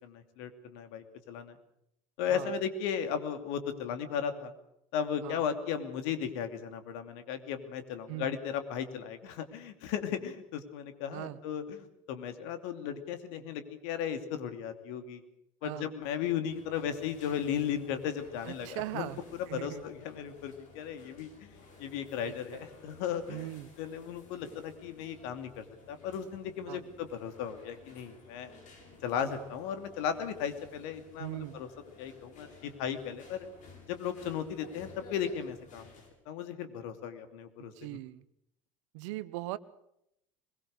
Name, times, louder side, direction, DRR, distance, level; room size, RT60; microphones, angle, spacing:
voice 1, 0.0-1.6 2.2-4.5 4.9-15.2 15.6-19.1 19.4-21.5 21.8-23.5 23.8-28.5 29.0-31.7 32.0-33.5 33.9-35.9 36.3-38.0, left 8 dB, 65° left, 8 dB, 2.8 m, -36 dB
voice 2, 15.6-15.9 18.4-19.2 19.5-19.8 22.2-22.6 23.3-23.7 26.7-26.9 31.2-31.6 37.6-38.2 38.9-39.6, right 17 dB, 70° right, 16 dB, 1.1 m, -40 dB
sound 1, 16.4-36.1, left 3 dB, 50° left, 7.9 m, -55 dB
22.5 x 22.0 x 6.6 m, 0.78 s
hypercardioid pair, 75°, 17 cm